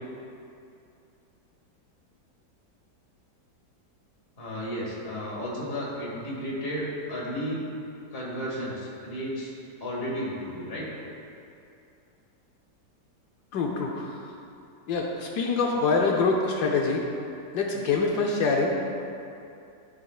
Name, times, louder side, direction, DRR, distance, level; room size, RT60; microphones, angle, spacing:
voice 1, 4.4-7.6 8.1-9.5 9.8-10.9, equal, 35° left, -5 dB, 1.8 m, -33 dB
voice 2, 13.5-14.1 14.9-17.0 17.5-18.8, left 4 dB, 75° left, 0 dB, 1.2 m, -25 dB
12.5 x 5.7 x 2.4 m, 2.6 s
omnidirectional pair, 1.8 m